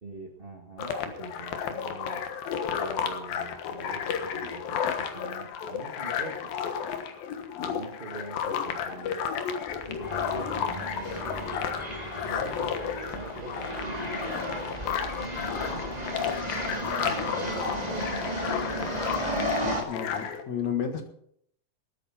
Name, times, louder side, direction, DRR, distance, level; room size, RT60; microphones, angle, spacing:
voice 1, 0.0-2.3 2.7-6.8 7.6-9.3 9.9-11.7 12.2-18.3, right 3 dB, 45° right, 2 dB, 0.7 m, -44 dB
sound 1, 0.8-20.4, left 8 dB, 80° left, 3.1 m, -32 dB
sound 2, 9.7-19.8, right 1 dB, 15° right, 1.4 m, -34 dB
voice 2, 19.6-21.1, left 7 dB, 55° left, 6 dB, 2.6 m, -32 dB
19.5 x 9.3 x 5.7 m, 0.69 s
omnidirectional pair, 4.1 m